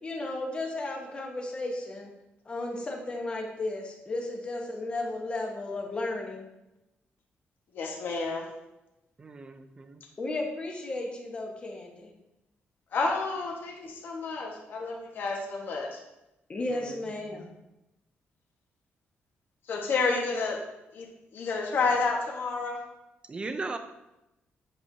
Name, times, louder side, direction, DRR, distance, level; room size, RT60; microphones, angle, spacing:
voice 1, 0.0-2.1 2.4-6.4 10.2-12.1 16.5-17.5, left 2 dB, 25° left, 0 dB, 1.1 m, -34 dB
voice 2, 7.7-8.5 12.9-16.0 19.7-20.6 20.9-21.1 21.3-22.8, left 4 dB, 60° left, 0 dB, 1.4 m, -30 dB
voice 3, 9.2-10.0 16.7-17.0 17.3-17.5 23.3-23.8, right 3 dB, 25° right, 8 dB, 0.6 m, -38 dB
8.4 x 6.0 x 2.8 m, 0.93 s
cardioid pair, 155°, 4 cm